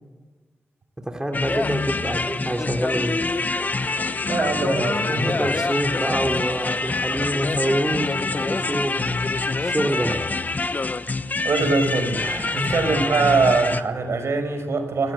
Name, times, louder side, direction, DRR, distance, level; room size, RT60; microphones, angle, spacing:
voice 1, 1.0-3.2 5.1-9.1 9.6-10.2 12.5-12.7, right 1 dB, 15° right, 4 dB, 3.2 m, -26 dB
sound 1, 1.3-13.8, left 3 dB, 40° left, 1.1 m, -25 dB
voice 2, 4.3-5.5 11.4-15.1, right 4 dB, 75° right, 6 dB, 6.0 m, -23 dB
27.0 x 18.5 x 8.8 m, 1.3 s
wide cardioid pair, 90°, 5 cm